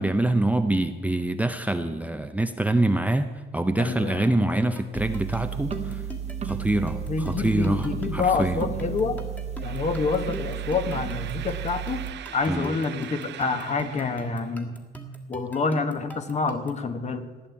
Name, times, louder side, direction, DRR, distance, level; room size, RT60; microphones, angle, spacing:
voice 1, 0.0-6.0 6.4-8.7 12.5-12.7, right 2 dB, 10° right, 7 dB, 0.6 m, -25 dB
voice 2, 3.8-4.5 7.1-9.2 9.6-12.0 12.3-14.8 15.3-17.3, left 4 dB, 40° left, 9 dB, 1.3 m, -27 dB
sound 1, 4.6-16.9, equal, 10° left, 1.7 m, -42 dB
sound 2, 4.9-12.1, right 8 dB, 40° right, 1.1 m, -33 dB
sound 3, 9.6-14.6, right 11 dB, 75° right, 0.7 m, -41 dB
15.5 x 10.5 x 8.3 m, 1.4 s
cardioid pair, 145°, 18 cm